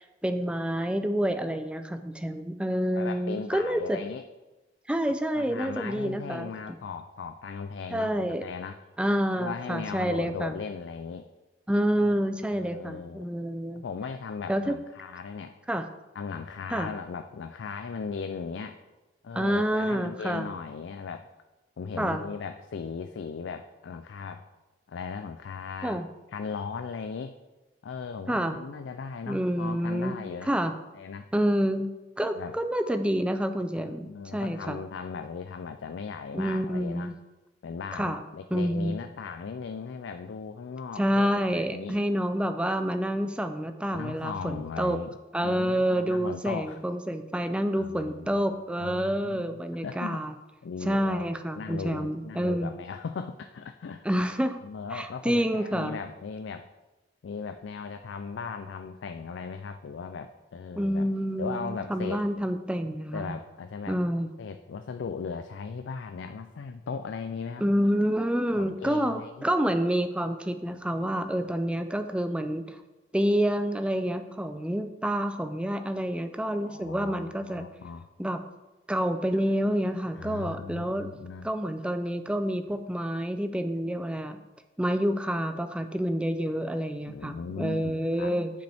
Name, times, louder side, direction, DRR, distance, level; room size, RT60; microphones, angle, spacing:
voice 1, 0.0-4.0 4.9-6.5 7.9-8.4 9.0-10.5 11.7-13.8 14.5-14.8 15.7-15.8 16.7-16.9 19.3-20.5 22.0-22.2 25.8-26.1 28.3-28.6 29.3-30.1 30.5-30.7 31.3-31.9 32.2-34.8 36.3-37.1 37.9-38.2 38.5-39.0 41.0-45.0 45.3-50.3 50.8-52.7 54.0-54.6 54.9-56.0 60.8-63.3 63.9-64.3 67.6-72.8 73.1-77.6 78.2-78.4 78.9-81.1 81.4-84.4 84.8-88.5, equal, 5° right, 8 dB, 0.4 m, -28 dB
voice 2, 2.9-4.2 5.3-8.8 9.3-11.3 12.0-13.3 13.8-15.5 16.1-18.8 19.2-21.3 21.8-24.4 24.9-26.0 26.3-27.3 27.8-30.5 30.9-31.3 32.4-32.6 34.0-37.1 37.6-42.0 43.9-45.1 45.4-46.8 47.8-50.2 50.6-51.3 51.6-54.2 54.6-56.7 57.2-61.1 61.4-62.2 63.1-64.0 64.4-67.6 68.5-69.3 71.4-71.5 76.6-78.1 80.1-81.5 87.0-88.3, left 5 dB, 85° left, 8 dB, 0.4 m, -38 dB
9.2 x 5.1 x 3.4 m, 1.1 s
head